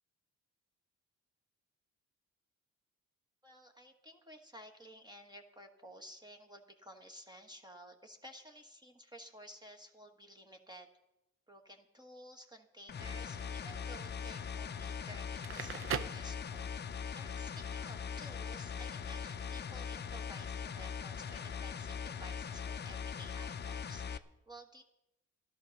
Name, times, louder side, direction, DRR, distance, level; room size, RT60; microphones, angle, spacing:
voice 1, 3.4-10.9 11.5-16.7 17.1-24.8, equal, 15° right, 4 dB, 1.4 m, -54 dB
sound 1, 12.9-24.2, left 6 dB, 35° left, 0.7 m, -41 dB
Crackle, 15.2-17.0, right 8 dB, 45° right, 0.6 m, -40 dB
13.0 x 11.0 x 6.4 m, 0.91 s
cardioid pair, 90°, 30 cm